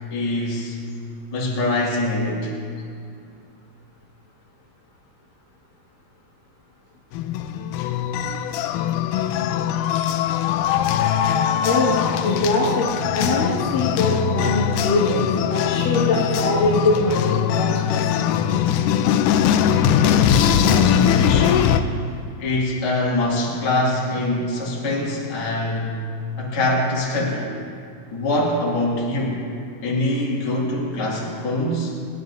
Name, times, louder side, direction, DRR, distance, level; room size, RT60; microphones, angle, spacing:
voice 1, 0.1-0.8 1.3-2.5 20.0-21.8 22.4-26.0 26.4-27.5 28.1-29.4 29.8-31.9, left 1 dB, 40° left, -5 dB, 2.8 m, -24 dB
sound 1, 7.1-21.8, left 9 dB, 85° left, 1.8 m, -21 dB
voice 2, 11.6-12.9 13.1-18.0, left 2 dB, 65° left, -4 dB, 3.5 m, -22 dB
27.5 x 10.5 x 2.7 m, 2.3 s
omnidirectional pair, 4.2 m